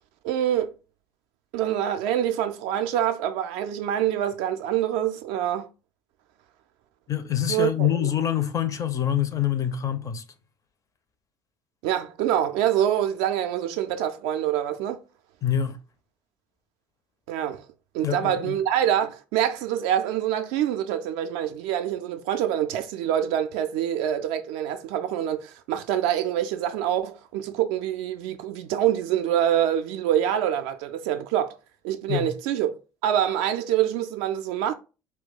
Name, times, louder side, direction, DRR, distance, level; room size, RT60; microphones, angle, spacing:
voice 1, 0.2-0.7 1.5-5.7 7.5-8.1 11.8-15.0 17.3-17.6 17.9-31.6 31.8-32.7 33.0-34.7, right 10 dB, 55° right, 0.4 m, -25 dB
voice 2, 7.1-10.2 15.4-15.8 18.0-18.5 32.1-32.3, left 10 dB, 30° left, 0.4 m, -25 dB
2.2 x 2.2 x 3.7 m
figure-of-eight pair, 60°, 11 cm